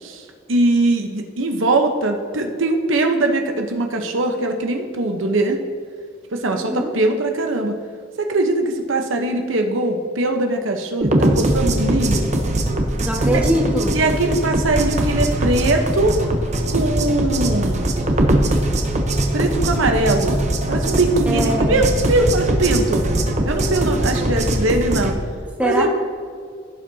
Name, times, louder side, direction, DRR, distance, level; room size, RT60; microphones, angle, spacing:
voice 1, 0.0-5.6 6.3-7.7 8.2-12.3 13.2-13.4 13.9-16.2 16.7-17.9 19.3-20.4 20.7-23.1 23.4-25.1 25.6-25.9, right 2 dB, 90° right, 4 dB, 0.9 m, -21 dB
voice 2, 6.5-6.9 13.0-13.9 21.3-21.9 25.6-25.9, equal, 5° right, -2 dB, 1.5 m, -22 dB
sound 1, 11.0-25.1, right 1 dB, 35° right, 0.9 m, -21 dB
16.0 x 7.4 x 2.8 m, 2.2 s
head